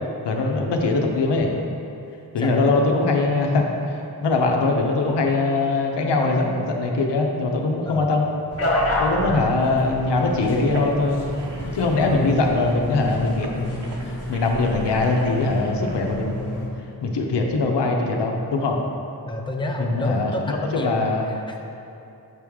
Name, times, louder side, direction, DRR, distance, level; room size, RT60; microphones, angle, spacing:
voice 1, 0.2-1.5 2.3-8.3 9.0-11.2 11.7-16.7 17.0-18.8 19.8-21.3, left 3 dB, 85° left, 1 dB, 0.7 m, -22 dB
voice 2, 2.4-2.7 7.8-8.1 9.2-9.4 19.3-21.6, left 1 dB, 10° left, 1 dB, 0.6 m, -30 dB
sound 1, 8.5-16.7, left 1 dB, 35° left, 1.2 m, -29 dB
sound 2, 10.7-16.0, right 2 dB, 80° right, 0.7 m, -38 dB
6.6 x 4.7 x 3.5 m, 2.7 s
cardioid pair, 65°, 41 cm